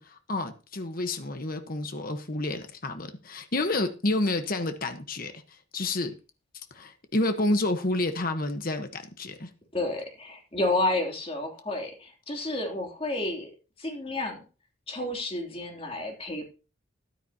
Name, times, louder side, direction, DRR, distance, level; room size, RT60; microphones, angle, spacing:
voice 1, 0.0-6.1 6.7-9.5, left 2 dB, 45° left, 1.2 m, -29 dB
voice 2, 9.7-13.5 13.8-14.4 14.9-16.5, left 2 dB, 30° left, 3.0 m, -30 dB
13.5 x 12.5 x 2.9 m
head